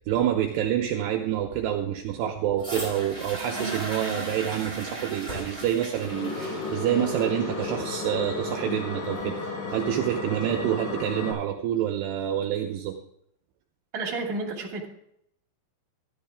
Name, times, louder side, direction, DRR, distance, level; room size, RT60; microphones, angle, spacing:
voice 1, 0.1-13.0, right 10 dB, 80° right, 2 dB, 2.5 m, -27 dB
sound 1, 2.6-10.6 11.4-11.5, right 2 dB, 15° left, 1.9 m, -37 dB
sound 2, 5.9-11.3, left 3 dB, 50° left, 4.0 m, -33 dB
voice 2, 13.9-14.9, right 3 dB, 30° right, -2 dB, 1.7 m, -31 dB
13.5 x 11.0 x 3.6 m, 0.73 s
omnidirectional pair, 5.6 m